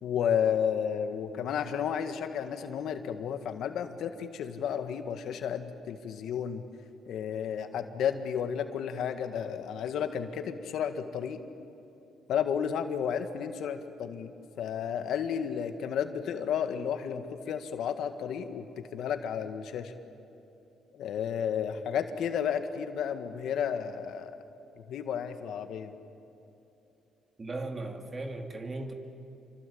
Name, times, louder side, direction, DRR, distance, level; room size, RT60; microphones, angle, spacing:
voice 1, 0.0-6.6 7.1-11.4 12.3-18.6 18.9-19.9 20.9-24.3 24.8-25.9, left 8 dB, 75° left, 1.8 m, -32 dB
voice 2, 27.4-28.9, right 2 dB, 30° right, 2.8 m, -37 dB
28.0 x 24.5 x 8.7 m
cardioid pair, 90°, 0 cm